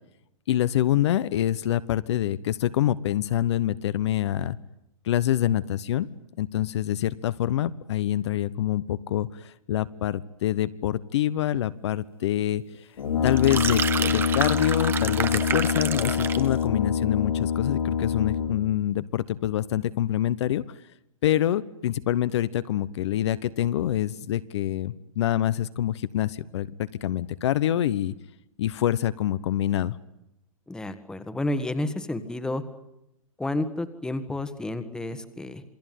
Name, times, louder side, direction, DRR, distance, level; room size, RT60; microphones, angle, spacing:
voice 1, 0.5-4.6 5.0-6.1 6.4-12.9 13.2-20.6 21.2-28.1 28.6-30.0, left 12 dB, 55° left, 15 dB, 1.1 m, -26 dB
Brass instrument, 13.0-18.7, left 7 dB, 80° left, 5.0 m, -26 dB
sound 1, 13.3-16.5, right 7 dB, 10° right, 1.1 m, -29 dB
voice 2, 30.7-32.6 33.4-35.6, left 1 dB, 5° left, 11 dB, 1.6 m, -30 dB
28.0 x 20.5 x 9.3 m, 0.84 s
hypercardioid pair, 150°, 18 cm